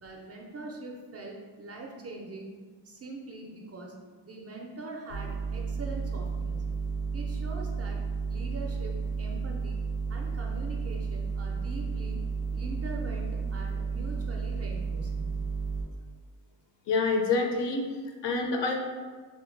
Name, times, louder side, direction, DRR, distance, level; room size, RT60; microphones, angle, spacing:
voice 1, 0.0-2.5 2.8-3.9 4.2-6.7 7.1-8.0 8.3-9.8 10.1-15.4, right 2 dB, 35° right, 0 dB, 0.4 m, -42 dB
sound 1, 5.1-15.8, right 5 dB, 85° left, 1.0 m, -32 dB
voice 2, 16.9-18.7, left 3 dB, 65° left, 3 dB, 0.5 m, -27 dB
2.7 x 2.5 x 2.5 m, 1.5 s
cardioid pair, 100°, 45 cm